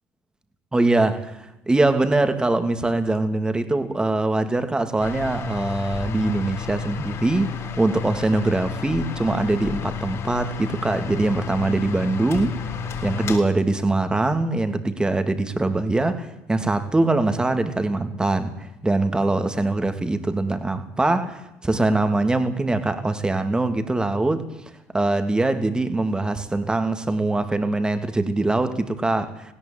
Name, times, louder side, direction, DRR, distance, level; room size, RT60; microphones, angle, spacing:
voice 1, 0.7-12.5 13.0-24.4 24.9-29.5, right 2 dB, 15° right, 2.9 m, -23 dB
sound 1, 5.0-13.4, left 7 dB, 50° left, 6.8 m, -32 dB
19.0 x 18.0 x 9.3 m
supercardioid pair, 80°, 6 cm